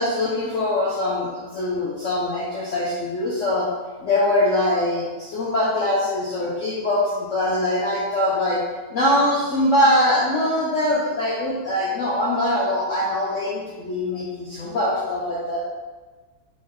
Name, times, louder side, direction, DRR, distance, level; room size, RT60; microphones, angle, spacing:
voice 1, 0.0-3.7 4.0-8.6 8.9-15.6, left 1 dB, 60° left, -5 dB, 0.9 m, -22 dB
4.2 x 3.9 x 3.1 m, 1.3 s
omnidirectional pair, 1.7 m